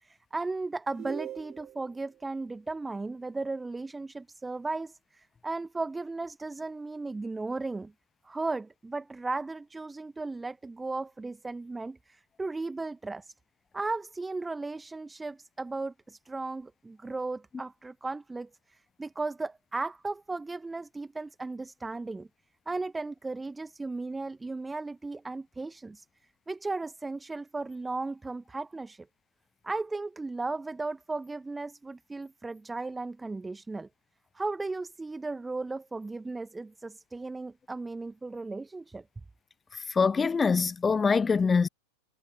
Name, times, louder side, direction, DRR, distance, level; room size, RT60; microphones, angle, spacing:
voice 1, 0.0-7.9 8.2-13.3 13.7-22.3 22.7-26.0 26.5-29.1 29.6-33.9 34.3-39.0, right 3 dB, 10° right, 1.3 m, -36 dB
sound 1, 0.9-2.0, right 12 dB, 30° right, 5.3 m, -41 dB
voice 2, 40.0-41.7, left 5 dB, 15° left, 0.4 m, -24 dB
figure-of-eight pair, 90°, 0 cm